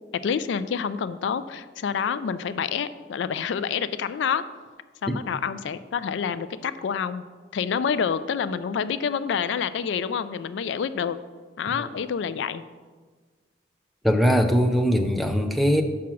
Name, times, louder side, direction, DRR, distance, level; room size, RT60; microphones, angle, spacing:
voice 1, 0.1-4.4 5.0-7.2 7.5-11.2 11.6-12.6, left 7 dB, 70° left, 14 dB, 0.3 m, -28 dB
voice 2, 14.0-15.8, equal, ahead, 5 dB, 0.5 m, -20 dB
6.0 x 5.8 x 6.1 m, 1.4 s
head